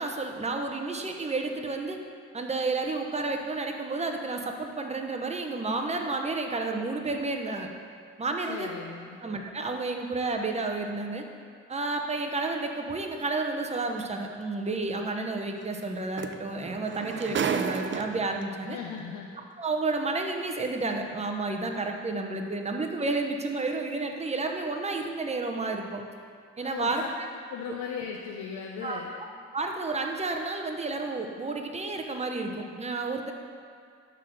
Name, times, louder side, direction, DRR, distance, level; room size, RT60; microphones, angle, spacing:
voice 1, 0.0-2.0 2.3-7.7 8.2-8.7 9.2-11.2 11.7-18.8 19.6-26.0 26.6-27.3 28.8-29.0 29.5-33.3, right 3 dB, 20° right, 3 dB, 0.9 m, -31 dB
voice 2, 8.5-9.2 18.6-19.3 26.6-26.9 27.5-29.2, left 7 dB, 80° left, 1 dB, 0.7 m, -37 dB
sound 1, 14.0-14.1 15.8-15.9 16.2-18.4 19.4-19.5, right 6 dB, 40° right, 0.5 m, -31 dB
10.5 x 3.8 x 6.4 m, 2.2 s
cardioid pair, 90°, 30 cm